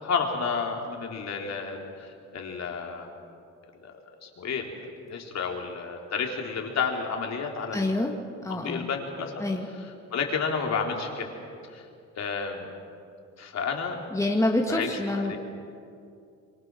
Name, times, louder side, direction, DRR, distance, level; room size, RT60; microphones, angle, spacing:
voice 1, 0.0-3.1 3.8-7.9 8.5-9.3 10.1-11.3 11.7-11.9 12.2-12.7 13.4-14.0 14.7-15.4, left 5 dB, 60° left, 2 dB, 3.7 m, -31 dB
voice 2, 7.7-8.1 8.4-8.9 9.4-9.7 14.1-15.4, left 1 dB, 10° left, 1 dB, 2.2 m, -26 dB
27.5 x 23.5 x 6.3 m, 2.4 s
cardioid pair, 90°, 30 cm